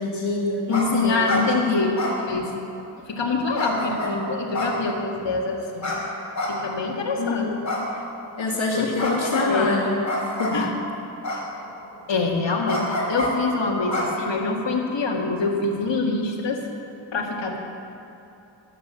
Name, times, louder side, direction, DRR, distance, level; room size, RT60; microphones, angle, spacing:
voice 1, 0.0-0.7 1.0-1.5 7.2-7.6 8.4-10.6, left 2 dB, 85° left, -2 dB, 2.0 m, -26 dB
voice 2, 0.7-2.0 2.3-2.6 3.0-6.0 6.5-7.5 8.7-9.8 10.5-10.7 11.3-11.4 12.1-16.6 17.1-17.6, left 3 dB, 65° left, -1 dB, 2.1 m, -25 dB
sound 1, 0.7-0.9 1.1-1.4 1.9-2.8 3.5-4.1 4.5-5.2 5.8-6.0 6.3-6.9 7.6-8.3 9.0-9.5 10.0-10.7 11.2-11.8 12.7-13.3 13.9-14.6, left 1 dB, 40° left, 4.1 m, -28 dB
13.0 x 11.0 x 7.6 m, 2.8 s
wide cardioid pair, 85°, 46 cm